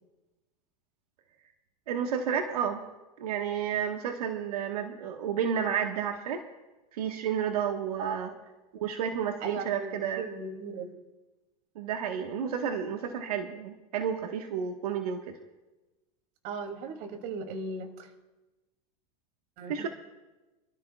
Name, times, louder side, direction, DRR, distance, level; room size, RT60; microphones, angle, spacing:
voice 1, 1.9-2.8 3.2-6.4 6.9-8.3 8.7-10.2 11.7-15.3 19.7-19.9, right 8 dB, 90° right, 3 dB, 1.5 m, -31 dB
voice 2, 8.0-8.4 9.4-10.9 16.4-18.1 19.6-19.9, right 4 dB, 55° right, 5 dB, 2.7 m, -37 dB
27.5 x 13.0 x 2.4 m, 1.1 s
supercardioid pair, 130°, 19 cm